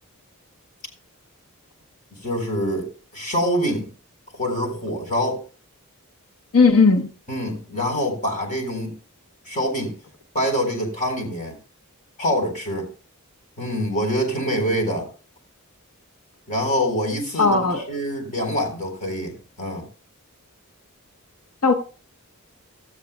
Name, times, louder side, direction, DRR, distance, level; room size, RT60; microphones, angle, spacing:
voice 1, 2.2-3.9 4.3-5.4 7.3-9.0 9.5-9.9 10.3-11.6 12.2-12.9 13.6-15.1 16.5-19.9, equal, 35° left, 3.8 m, -25 dB
voice 2, 6.5-7.1 17.4-17.8 21.6-21.7, left 4 dB, 90° left, 1.1 m, -16 dB
16.0 x 13.5 x 2.2 m
head